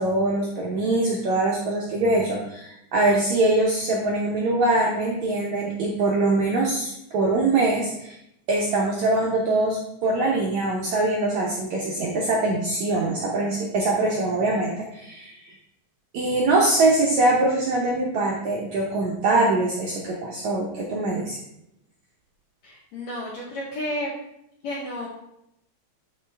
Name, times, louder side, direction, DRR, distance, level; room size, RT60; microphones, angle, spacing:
voice 1, 0.0-8.1 8.5-15.5 16.1-21.4, right 2 dB, 75° right, -3 dB, 1.7 m, -23 dB
voice 2, 22.6-24.1 24.6-25.1, left 1 dB, 70° left, -4 dB, 1.7 m, -31 dB
11.5 x 3.9 x 3.4 m, 0.80 s
omnidirectional pair, 4.4 m